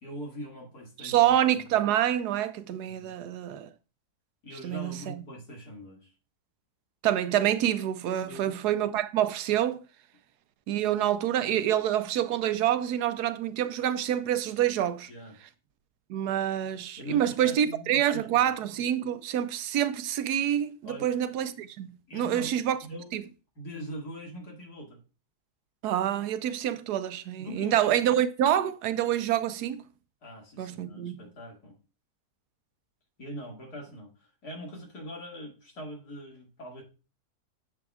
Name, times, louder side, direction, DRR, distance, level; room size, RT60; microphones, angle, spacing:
voice 1, 0.0-1.6 2.8-3.1 4.4-6.1 8.2-8.6 15.1-15.4 17.0-18.5 20.8-21.1 22.1-22.5 22.8-23.1 23.6-25.0 27.4-28.1 30.2-31.8 33.2-36.8, equal, 75° left, 2.7 m, -42 dB
voice 2, 1.0-3.7 4.6-5.2 7.0-9.8 10.7-15.1 16.1-22.8 23.1-23.2 25.8-29.8 30.6-31.2, right 11 dB, 80° right, 1.2 m, -27 dB
10.5 x 7.1 x 2.4 m
omnidirectional pair, 1.7 m